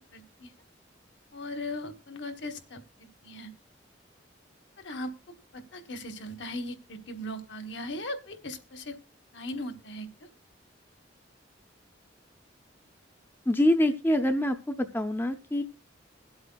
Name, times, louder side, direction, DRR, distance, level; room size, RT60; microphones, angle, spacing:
voice 1, 0.1-0.5 1.3-3.5 4.8-5.1 5.5-9.0 9.3-10.3, left 1 dB, 70° left, 6 dB, 1.3 m, -38 dB
voice 2, 13.5-15.6, left 1 dB, 10° left, 7 dB, 0.5 m, -25 dB
22.5 x 7.9 x 2.2 m, 0.32 s
head